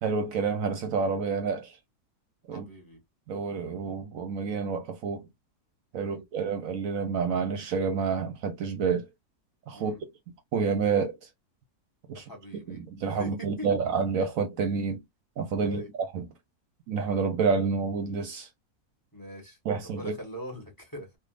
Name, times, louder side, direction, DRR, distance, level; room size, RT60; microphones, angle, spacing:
voice 1, 0.0-1.8 2.5-2.7 3.3-5.3 5.9-9.1 9.7-10.0 10.5-11.1 12.1-12.2 12.7-15.0 15.4-15.9 16.1-16.3 16.9-18.5 19.7-20.1, right 5 dB, 65° right, 1.0 m, -28 dB
voice 2, 2.5-3.0 6.0-6.2 9.7-10.0 12.1-13.7 15.6-15.9 19.1-21.2, equal, 15° left, 1.2 m, -43 dB
3.4 x 2.5 x 2.4 m
omnidirectional pair, 1.6 m